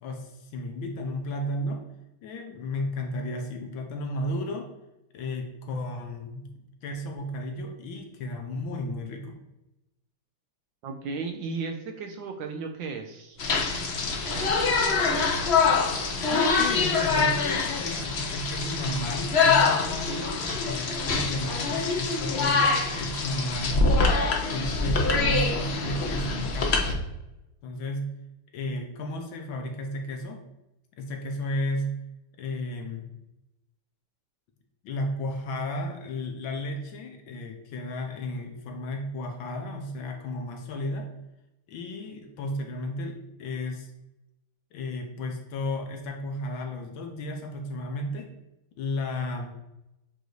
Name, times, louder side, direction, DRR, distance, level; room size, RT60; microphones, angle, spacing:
voice 1, 0.0-1.8 2.2-4.7 5.1-6.5 6.8-9.4 16.2-20.2 20.6-24.2 24.5-26.9 27.6-28.1 28.5-30.4 30.9-31.9 32.4-33.1 34.8-41.1 41.7-43.9 44.7-48.3 48.8-49.5, left 1 dB, 70° left, 4 dB, 1.5 m, -33 dB
voice 2, 10.8-13.4, right 4 dB, 70° right, 4 dB, 1.2 m, -34 dB
sound 1, 13.3-18.4, right 1 dB, 90° right, 2.7 m, -43 dB
sound 2, 13.4-26.9, left 4 dB, 85° left, 0.5 m, -25 dB
7.9 x 2.7 x 4.6 m, 0.93 s
omnidirectional pair, 2.4 m